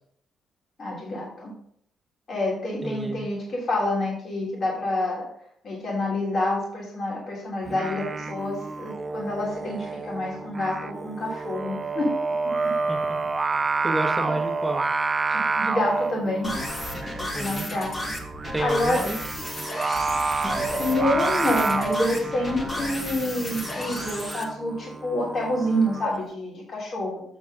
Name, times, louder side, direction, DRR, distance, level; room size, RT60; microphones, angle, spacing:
voice 1, 0.8-1.5 2.3-5.2 5.6-12.1 12.4-12.7 15.3-16.5 17.2-18.1 18.6-19.0 20.7-27.2, left 1 dB, 55° left, -4 dB, 3.2 m, -27 dB
voice 2, 2.8-3.3 12.9-13.2 13.8-14.8 17.3-17.7 18.5-19.2, right 1 dB, 5° right, 1 dB, 1.7 m, -30 dB
Singing, 7.7-26.1, right 4 dB, 30° right, 0.5 m, -29 dB
sound 1, 16.4-24.4, left 1 dB, 30° left, 2.0 m, -33 dB
8.1 x 6.7 x 3.8 m, 0.68 s
cardioid pair, 75°, 0 cm